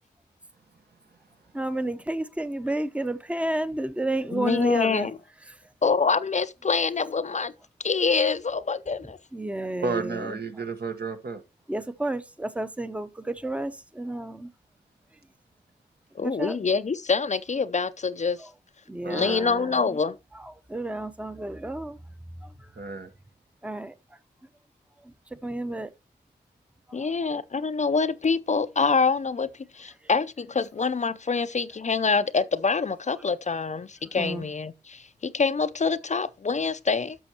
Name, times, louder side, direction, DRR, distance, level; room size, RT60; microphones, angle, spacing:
voice 1, 1.5-5.1 9.3-10.4 11.7-14.5 16.4-16.6 18.9-20.0 20.4-22.0 22.4-22.5 23.6-23.9 25.4-25.9 27.0-27.1 34.2-34.4, right 1 dB, 5° right, 0.7 m, -31 dB
voice 2, 4.3-5.2 5.8-7.5 7.8-9.2 16.2-18.4 19.1-20.2 26.9-29.5 29.7-37.2, left 5 dB, 40° left, 0.5 m, -25 dB
voice 3, 9.8-11.4 19.0-19.4 22.8-23.1, right 4 dB, 60° right, 1.1 m, -32 dB
10.5 x 6.2 x 2.9 m
cardioid pair, 45°, 18 cm